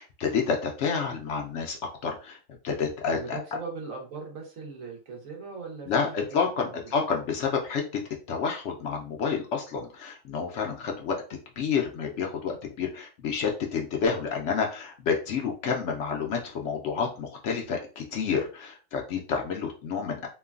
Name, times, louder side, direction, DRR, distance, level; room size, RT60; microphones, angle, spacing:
voice 1, 0.0-2.4 2.6-3.4 5.9-7.8 8.3-20.3, left 6 dB, 65° left, 1 dB, 0.8 m, -29 dB
voice 2, 3.1-6.2 6.5-6.7, right 4 dB, 75° right, 1 dB, 1.3 m, -39 dB
3.1 x 2.2 x 2.3 m, 0.35 s
omnidirectional pair, 1.4 m